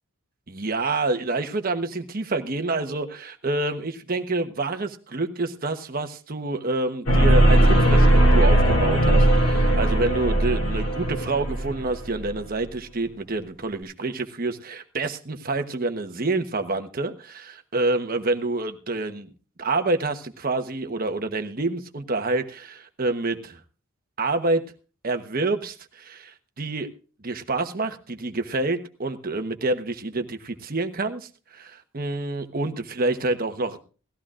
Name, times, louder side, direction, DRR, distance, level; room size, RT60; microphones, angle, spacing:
voice 1, 0.5-19.3 19.6-23.6 24.2-24.6 25.0-26.9 27.2-33.8, right 2 dB, 40° right, 7 dB, 1.1 m, -27 dB
sound 1, 7.1-12.4, right 1 dB, 85° left, 3.4 m, -18 dB
18.5 x 14.5 x 2.5 m, 0.37 s
head